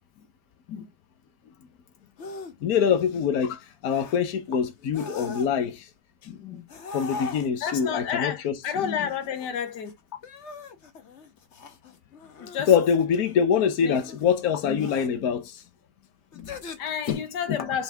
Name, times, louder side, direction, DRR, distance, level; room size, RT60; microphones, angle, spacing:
sound 1, 2.2-2.5 2.9-3.3 3.9-4.2 4.8-5.8 6.7-7.8 8.7-9.9 10.2-13.3 13.9-14.3 14.8-15.1 16.3-17.1, left 5 dB, 50° left, 1.2 m, -40 dB
voice 1, 2.6-5.8 6.9-8.6 12.7-15.4 17.1-17.2 17.5-17.6, left 7 dB, 65° left, 1.5 m, -24 dB
voice 2, 6.2-6.6 7.6-10.0 12.4-12.7 13.8-14.0 14.6-14.9 16.3-17.8, left 8 dB, 90° left, 1.7 m, -31 dB
5.8 x 5.7 x 3.5 m
omnidirectional pair, 1.8 m